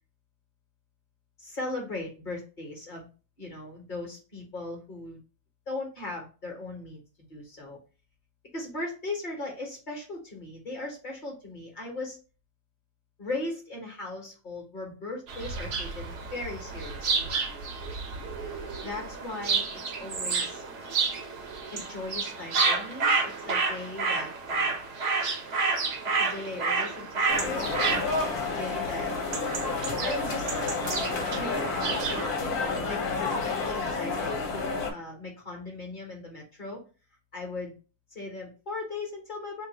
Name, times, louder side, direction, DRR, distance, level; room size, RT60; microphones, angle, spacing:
voice 1, 1.4-3.1 3.4-5.2 5.7-7.0 7.3-7.8 8.5-12.2 13.2-17.3 18.8-20.6 21.7-24.8 26.1-27.7 28.4-29.1 29.9-30.7 31.4-34.3 34.9-36.8 37.3-37.8 38.1-39.7, left 2 dB, 35° left, 0 dB, 0.9 m, -38 dB
sound 1, 15.3-32.3, right 4 dB, 60° right, 0.8 m, -30 dB
sound 2, 27.3-34.9, left 4 dB, 60° left, 1.2 m, -30 dB
3.0 x 2.5 x 3.8 m, 0.34 s
omnidirectional pair, 1.9 m